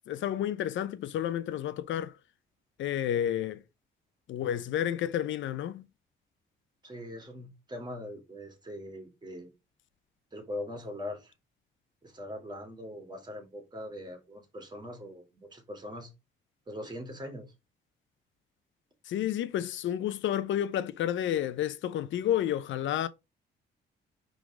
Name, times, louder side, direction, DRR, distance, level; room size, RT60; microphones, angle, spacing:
voice 1, 0.1-2.1 2.8-3.6 4.3-5.8 19.0-23.1, left 11 dB, 75° left, 0.7 m, -30 dB
voice 2, 6.8-9.5 10.3-11.3 12.0-16.1 16.7-17.5, left 1 dB, 20° right, 2.6 m, -41 dB
5.1 x 3.8 x 5.0 m
cardioid pair, 90°, 20 cm